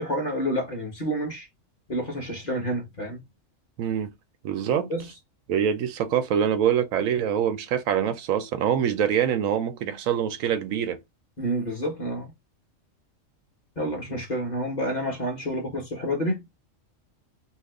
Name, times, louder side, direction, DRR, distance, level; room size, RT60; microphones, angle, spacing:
voice 1, 0.0-1.5 1.9-3.2 4.9-5.1 11.4-12.3 13.8-16.5, equal, 35° left, 1.1 m, -29 dB
voice 2, 3.8-4.1 4.4-4.9 5.5-11.0, right 9 dB, 80° right, 1.0 m, -25 dB
2.8 x 2.4 x 3.5 m
omnidirectional pair, 1.4 m